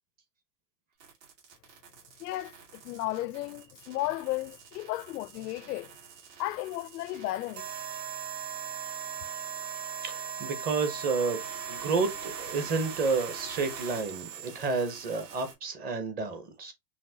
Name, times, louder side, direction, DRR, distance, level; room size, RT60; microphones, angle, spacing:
sound 1, 1.0-15.5, right 7 dB, 85° right, 2.8 m, -41 dB
voice 1, 2.2-2.5 2.8-5.9 6.4-7.7, left 16 dB, 70° left, 0.6 m, -34 dB
voice 2, 10.0-11.4 11.7-16.7, right 4 dB, 20° right, 0.5 m, -30 dB
5.7 x 2.6 x 2.6 m
supercardioid pair, 140°, 49 cm